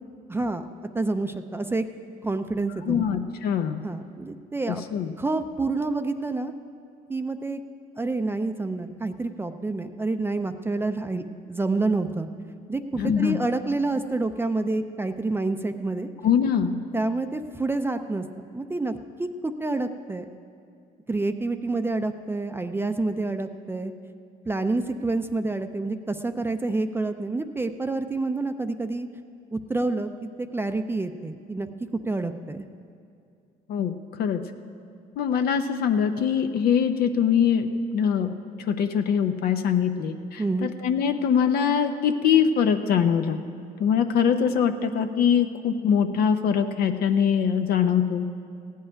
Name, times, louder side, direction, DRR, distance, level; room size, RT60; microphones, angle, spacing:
voice 1, 0.3-0.7 0.9-1.8 2.2-3.0 3.8-4.8 5.2-6.5 7.1-7.6 8.0-12.3 12.7-16.1 16.9-18.3 18.5-20.3 21.1-23.9 24.5-29.1 29.5-30.1 30.4-31.7 32.1-32.6 40.4-40.7, right 2 dB, 15° right, 8 dB, 0.5 m, -28 dB
voice 2, 2.8-3.8 4.7-5.1 13.0-13.4 16.2-16.8 33.7-34.4 35.2-38.3 38.7-43.4 43.8-48.3, left 7 dB, 65° left, 7 dB, 0.7 m, -23 dB
15.5 x 5.6 x 9.8 m, 2.4 s
cardioid pair, 110°, 17 cm